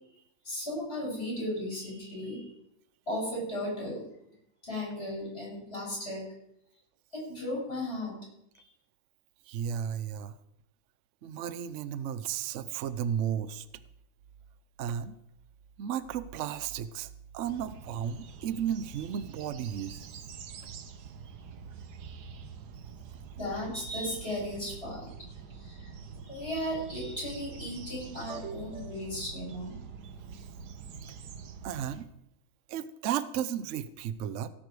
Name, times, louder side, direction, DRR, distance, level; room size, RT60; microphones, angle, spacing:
voice 1, 0.4-2.5 3.1-4.0 4.6-6.2 7.1-8.2 8.6-8.7 23.4-25.1 25.5-25.9 26.2-29.8, left 1 dB, 30° left, -4 dB, 7.7 m, -35 dB
voice 2, 9.5-10.3 11.2-13.7 14.8-15.1 15.8-20.1 28.3-28.7 31.6-32.1 32.7-34.5, right 9 dB, 85° right, 14 dB, 0.6 m, -34 dB
sound 1, 17.4-32.0, right 5 dB, 60° right, 1.4 m, -46 dB
17.5 x 10.0 x 4.8 m, 0.78 s
omnidirectional pair, 2.2 m